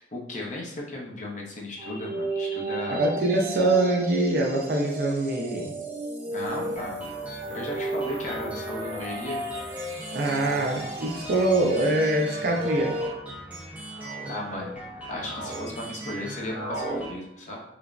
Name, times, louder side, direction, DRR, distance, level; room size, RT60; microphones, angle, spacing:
voice 1, 0.1-3.1 6.3-7.1 7.5-9.4 14.3-14.8 15.1-17.6, left 1 dB, 45° left, -2 dB, 0.6 m, -35 dB
sound 1, 1.8-13.1, right 2 dB, 35° right, 0.9 m, -34 dB
voice 2, 2.9-5.7 10.1-12.9, right 2 dB, 55° right, -1 dB, 0.5 m, -24 dB
sound 2, 6.5-17.1, right 1 dB, 10° right, 0.5 m, -40 dB
sound 3, 10.1-10.4 11.3-11.7 12.6-13.0 13.6-14.3 14.8-15.7 15.9-17.0, right 1 dB, 75° left, 1.2 m, -38 dB
3.2 x 2.0 x 2.4 m, 0.81 s
head